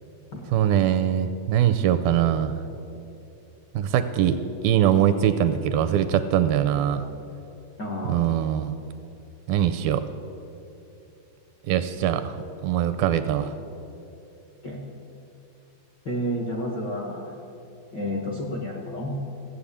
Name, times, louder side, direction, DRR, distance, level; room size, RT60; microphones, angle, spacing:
voice 1, 0.5-2.5 3.7-4.4 4.6-7.1 8.1-8.7 9.5-10.0 11.7-12.4 12.6-13.5, right 10 dB, 80° right, 10 dB, 2.2 m, -22 dB
voice 2, 7.8-8.2 14.6-14.8 16.0-17.3 17.9-19.1, equal, 65° left, 0 dB, 1.0 m, -30 dB
15.5 x 7.8 x 8.4 m, 2.9 s
omnidirectional pair, 4.5 m